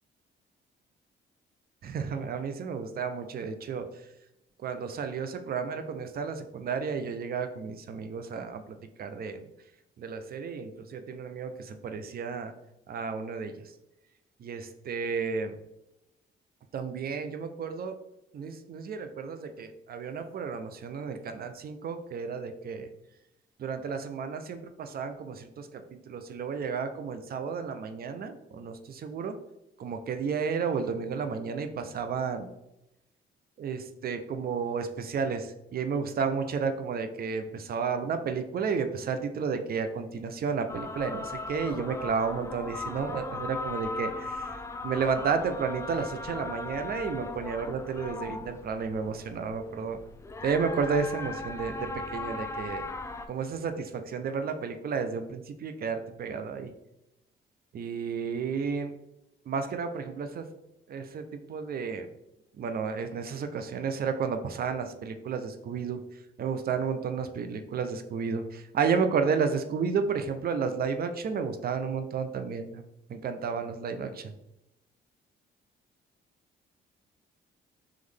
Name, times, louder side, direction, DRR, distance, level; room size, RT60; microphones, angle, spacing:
voice 1, 1.8-3.9 4.6-9.5 10.0-12.5 12.9-13.5 14.4-15.6 16.7-17.9 18.3-22.9 23.6-29.3 29.8-32.5 33.6-44.6 44.8-50.0 50.4-52.9 53.3-56.7 57.7-58.9 59.5-60.5 60.9-62.1 62.6-66.0 66.4-72.8 73.1-74.3, right 5 dB, 50° right, 8 dB, 0.5 m, -32 dB
sound 1, 40.7-53.3, left 3 dB, 15° left, 0.3 m, -38 dB
3.8 x 3.1 x 3.4 m, 0.90 s
cardioid pair, 90°, 20 cm